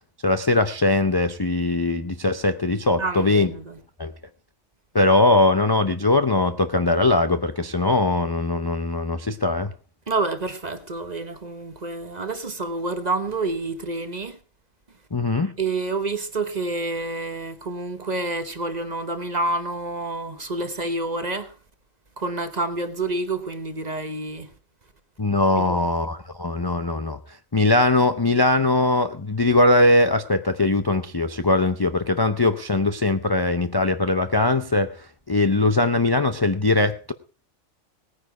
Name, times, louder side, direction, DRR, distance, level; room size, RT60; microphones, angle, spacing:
voice 1, 0.2-3.5 4.0-4.1 4.9-9.7 15.1-15.5 25.2-27.2 27.5-37.1, left 2 dB, 25° left, 0.5 m, -21 dB
voice 2, 3.0-3.8 10.1-14.4 15.6-21.5 22.2-24.5 25.6-25.9, right 2 dB, 35° right, 1.2 m, -28 dB
18.5 x 9.8 x 4.9 m
omnidirectional pair, 1.4 m